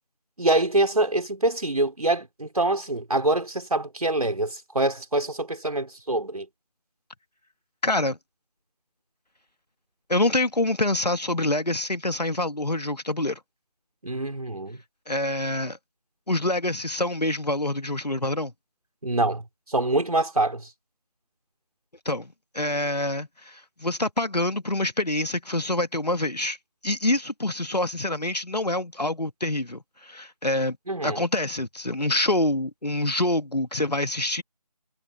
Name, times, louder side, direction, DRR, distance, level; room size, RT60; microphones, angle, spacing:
voice 1, 0.4-6.5 14.0-14.8 19.0-19.4 19.7-20.7 30.9-31.3, right 2 dB, 65° right, 5.1 m, -25 dB
voice 2, 7.8-8.2 10.1-13.4 15.1-15.8 16.3-18.5 22.1-26.6 26.8-30.8 31.0-34.4, left 1 dB, 80° left, 2.3 m, -26 dB
figure-of-eight pair, 160°, 20 cm